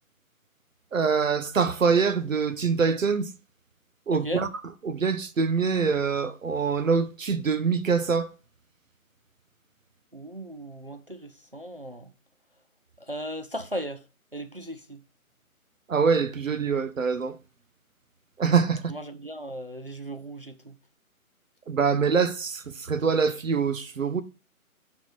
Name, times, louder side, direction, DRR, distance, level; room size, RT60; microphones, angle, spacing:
voice 1, 0.9-3.3 4.1-4.5 4.8-8.3 15.9-17.4 18.4-18.9 21.7-24.2, right 5 dB, 60° right, 1.0 m, -24 dB
voice 2, 4.1-4.5 10.1-12.1 13.1-14.0 14.3-15.0 18.9-20.8, equal, 40° right, 0.5 m, -37 dB
6.5 x 5.1 x 5.9 m
hypercardioid pair, 175°, 44 cm